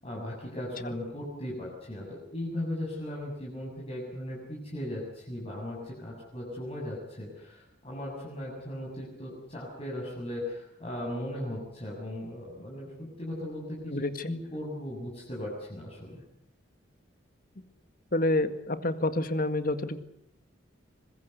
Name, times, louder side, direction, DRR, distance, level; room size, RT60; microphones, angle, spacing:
voice 1, 0.0-16.2, left 1 dB, 30° left, -4 dB, 7.3 m, -37 dB
voice 2, 13.9-14.3 18.1-20.0, left 2 dB, 50° left, 10 dB, 1.9 m, -28 dB
25.5 x 21.5 x 8.1 m, 0.71 s
head